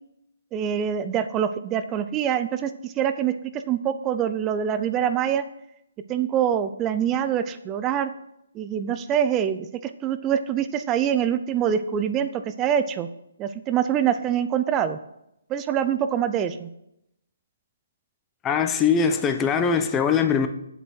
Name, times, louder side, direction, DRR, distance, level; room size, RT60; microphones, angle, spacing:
voice 1, 0.5-5.4 6.1-8.1 8.5-13.1 13.4-15.0 15.5-16.7, right 9 dB, 20° right, 0.6 m, -25 dB
voice 2, 18.4-20.5, left 6 dB, 15° left, 0.9 m, -21 dB
8.2 x 7.8 x 6.1 m
figure-of-eight pair, 140°, 0 cm